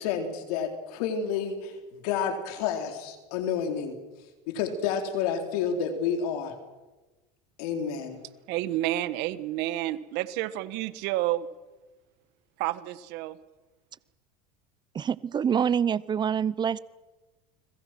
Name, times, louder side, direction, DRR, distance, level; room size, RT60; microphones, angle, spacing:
voice 1, 0.0-3.9 4.5-6.5 7.6-8.2, left 7 dB, 75° left, 3.9 m, -30 dB
voice 2, 8.5-11.5 12.6-13.4, right 15 dB, 60° right, 1.5 m, -30 dB
voice 3, 14.9-16.8, right 8 dB, 20° right, 0.7 m, -26 dB
30.0 x 21.5 x 6.1 m
supercardioid pair, 130°, 20 cm